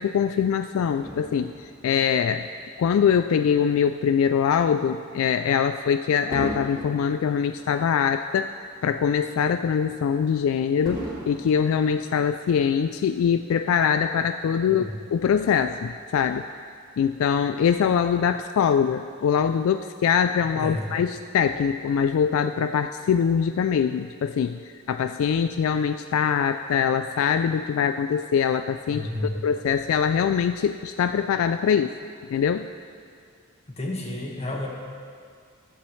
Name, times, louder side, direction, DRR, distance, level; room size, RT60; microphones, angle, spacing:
voice 1, 0.0-2.5 2.8-16.5 17.0-29.1 29.4-31.9 32.3-32.7, left 7 dB, 70° left, 9 dB, 0.3 m, -23 dB
Fireworks, 1.0-3.6 4.2-4.4 6.3-8.8 9.2-9.3 10.9-12.7 13.5-13.6, right 1 dB, 20° right, 2.7 m, -39 dB
voice 2, 28.9-29.4 33.8-34.7, left 1 dB, 30° left, -1 dB, 1.6 m, -31 dB
14.5 x 11.5 x 3.2 m, 2.2 s
head